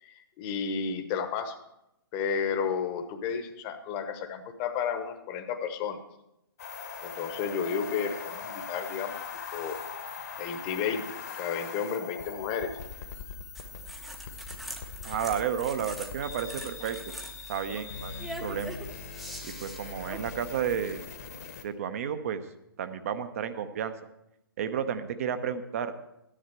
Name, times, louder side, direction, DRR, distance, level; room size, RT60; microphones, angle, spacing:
voice 1, 0.0-1.6 2.1-6.0 7.0-9.2 9.5-9.8 10.4-11.0 11.4-12.7, left 6 dB, 25° left, 8 dB, 1.0 m, -32 dB
sound 1, 6.6-21.6, left 6 dB, 45° left, 1.2 m, -41 dB
sound 2, 13.5-20.8, right 1 dB, ahead, 0.8 m, -43 dB
voice 2, 15.0-17.0 17.5-18.7 19.4-21.0 21.6-22.4 22.8-23.9 24.6-25.9, right 8 dB, 40° right, 10 dB, 0.8 m, -32 dB
13.0 x 10.0 x 4.5 m, 0.85 s
figure-of-eight pair, 130°, 12 cm